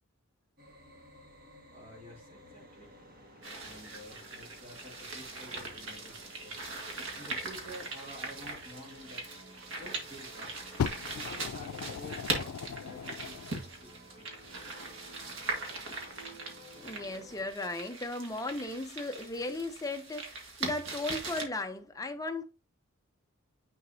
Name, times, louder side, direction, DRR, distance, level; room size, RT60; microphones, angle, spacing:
sound 1, 0.6-17.5, right 1 dB, 45° right, 1.6 m, -54 dB
voice 1, 1.7-2.9 3.6-6.7 7.1-9.2 9.8-10.6 11.1-14.3, equal, 25° right, 2.0 m, -50 dB
sound 2, 3.4-21.4, right 3 dB, 65° right, 1.7 m, -40 dB
Fire, 10.8-13.6 14.4-14.5, left 7 dB, 90° left, 0.4 m, -37 dB
voice 2, 16.8-22.4, left 2 dB, 15° left, 0.6 m, -36 dB
9.8 x 4.0 x 2.7 m
head